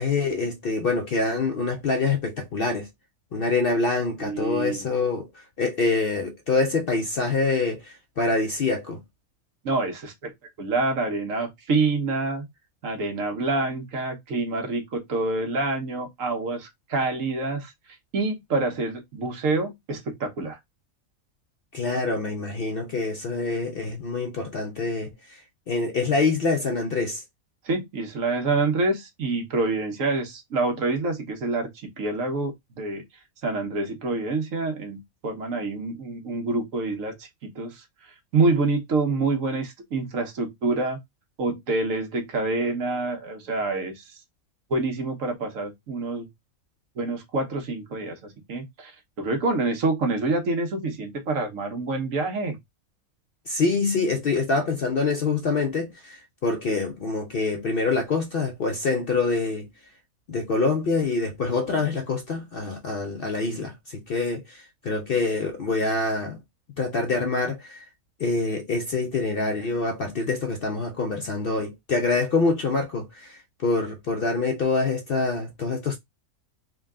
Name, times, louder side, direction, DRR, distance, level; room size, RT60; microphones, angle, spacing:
voice 1, 0.0-2.9 3.3-9.0 21.7-27.2 53.5-59.7 60.3-66.4 66.8-67.8 68.2-76.0, left 3 dB, 60° left, 0.6 m, -26 dB
voice 2, 4.2-4.8 9.6-10.3 10.6-12.4 12.8-17.7 18.1-20.6 27.6-31.7 32.0-33.0 33.4-37.8 38.3-41.0 41.4-44.0 44.7-46.3 47.0-48.9 49.2-52.6, right 3 dB, 70° right, 1.4 m, -27 dB
3.7 x 2.3 x 3.5 m
omnidirectional pair, 1.5 m